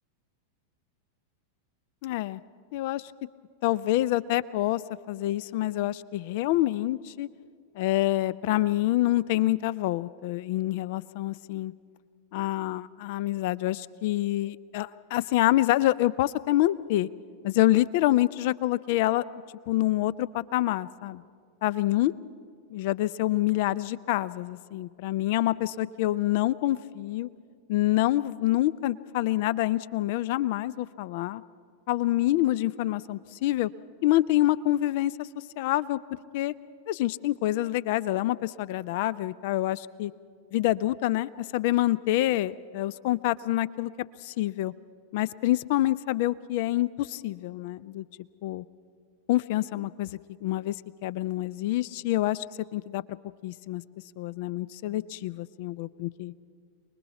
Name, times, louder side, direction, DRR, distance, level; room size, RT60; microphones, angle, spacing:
voice 1, 2.0-2.4 2.7-3.1 3.6-4.8 5.1-7.3 7.8-11.7 12.3-17.1 17.4-19.2 19.7-21.2 21.6-22.1 22.7-27.3 27.7-31.4 31.9-33.7 34.0-35.3 35.6-36.0 36.3-36.5 36.9-40.1 40.5-43.9 44.2-44.7 45.1-48.1 48.4-48.6 49.3-50.7 51.0-52.4 52.7-53.0 53.4-53.8 54.2-56.3, left 15 dB, 50° left, 19 dB, 0.5 m, -26 dB
28.0 x 20.5 x 5.8 m, 2.2 s
figure-of-eight pair, 90°, 0 cm